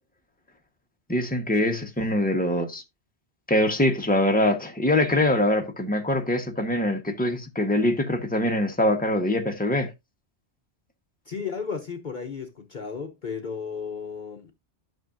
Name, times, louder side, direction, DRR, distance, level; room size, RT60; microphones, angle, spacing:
voice 1, 1.1-2.8 3.5-9.9, left 1 dB, 10° left, 1.2 m, -23 dB
voice 2, 11.3-14.5, left 6 dB, 45° left, 1.0 m, -34 dB
12.0 x 6.1 x 2.6 m
omnidirectional pair, 1.1 m